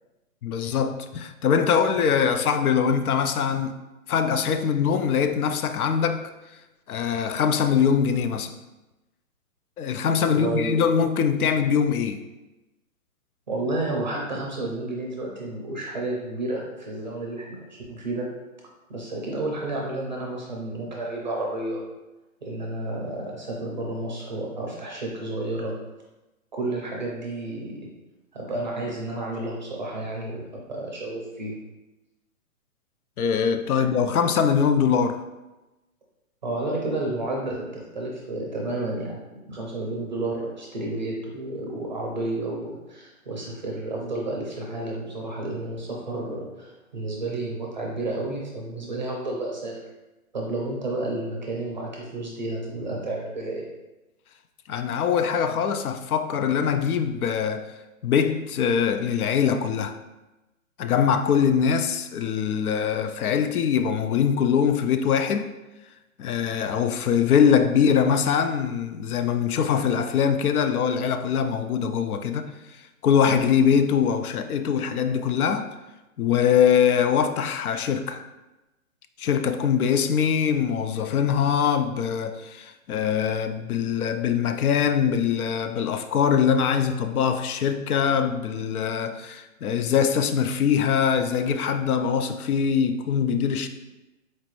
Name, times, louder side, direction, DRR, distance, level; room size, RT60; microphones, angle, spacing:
voice 1, 0.4-3.8 4.1-6.3 6.9-8.5 9.8-12.2 33.2-35.2 54.7-57.7 58.0-60.0 60.8-65.5 66.2-72.5 73.0-75.7 76.2-78.2 79.2-93.7, left 7 dB, 85° left, 0.5 m, -23 dB
voice 2, 10.2-10.8 13.5-18.3 18.9-21.8 22.4-25.7 26.5-27.9 28.3-31.6 36.4-39.2 39.5-49.8 50.3-53.7, right 2 dB, 35° right, 0.5 m, -31 dB
4.3 x 2.5 x 3.0 m
hypercardioid pair, 160°, 43 cm